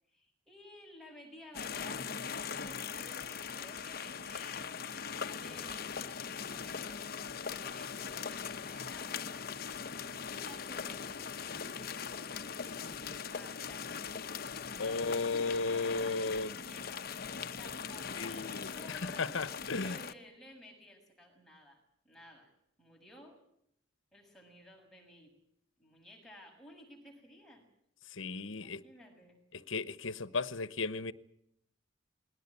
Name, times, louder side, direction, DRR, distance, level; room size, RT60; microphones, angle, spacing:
voice 1, 0.1-2.2 2.6-7.2 7.5-9.9 10.2-13.0 13.3-14.4 14.7-21.8 22.0-22.5 22.8-23.4 24.1-25.3 25.8-27.6 28.6-29.4, left 1 dB, ahead, 6.5 m, -55 dB
sound 1, 1.5-20.1, left 6 dB, 50° left, 0.9 m, -40 dB
voice 2, 14.8-16.5 18.2-20.0 28.1-28.8 29.7-31.1, left 3 dB, 80° left, 1.0 m, -35 dB
21.0 x 18.0 x 9.6 m
head